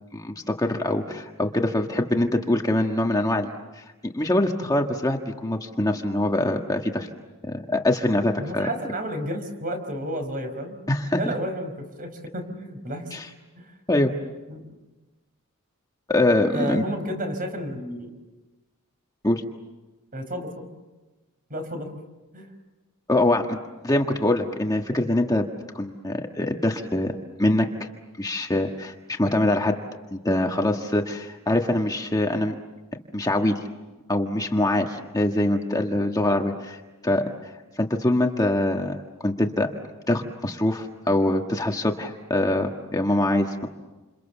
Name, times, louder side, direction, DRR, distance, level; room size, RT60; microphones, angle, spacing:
voice 1, 0.1-3.5 3.7-7.1 7.4-8.7 10.9-11.2 13.1-13.3 13.9-14.1 16.1-16.8 19.2-19.4 23.1-23.6 23.8-25.5 25.7-27.9 28.2-29.7 30.1-32.5 33.1-33.5 34.1-37.2 37.8-39.7 40.1-43.7, left 1 dB, 15° left, 3 dB, 1.5 m, -24 dB
voice 2, 8.4-10.7 11.1-13.1 13.5-13.7 14.5-14.7 16.5-18.1 20.1-20.7 21.5-21.9 22.3-22.5, equal, 40° right, 6 dB, 5.0 m, -31 dB
29.0 x 28.0 x 7.1 m, 1.1 s
head